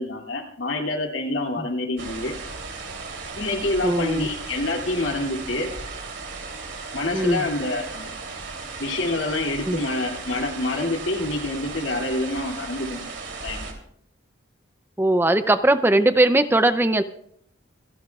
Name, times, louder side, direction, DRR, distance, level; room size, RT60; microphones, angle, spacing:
voice 1, 0.0-2.3 3.3-5.7 6.9-8.1 8.8-13.1 13.4-13.6, left 2 dB, 75° left, 1 dB, 2.6 m, -27 dB
sound 1, 2.0-13.7, right 4 dB, 70° right, 3.0 m, -36 dB
voice 2, 3.8-4.3 7.1-7.5 9.6-9.8 15.0-17.0, right 1 dB, 10° right, 10 dB, 0.5 m, -20 dB
27.5 x 13.0 x 2.4 m, 0.67 s
head